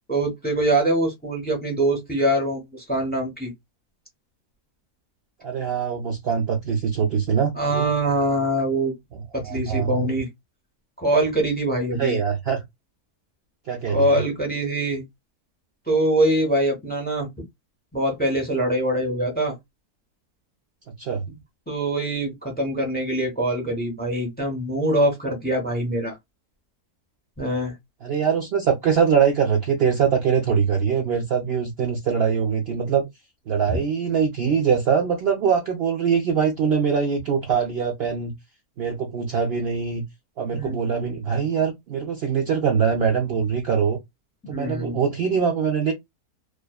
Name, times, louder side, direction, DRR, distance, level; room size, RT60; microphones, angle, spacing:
voice 1, 0.1-3.5 7.5-8.9 9.3-10.3 11.0-12.2 13.9-15.0 15.9-17.3 17.9-19.6 21.7-26.2 27.4-27.7 33.7-33.8 40.5-41.0 44.4-45.0, right 1 dB, 10° left, 0.6 m, -23 dB
voice 2, 5.4-7.9 9.1-10.2 12.0-12.6 13.7-14.1 21.0-21.3 28.0-33.1 33.5-38.3 38.8-40.0 40.4-44.0 44.5-45.9, right 6 dB, 80° right, 0.5 m, -23 dB
2.5 x 2.4 x 2.2 m
omnidirectional pair, 1.6 m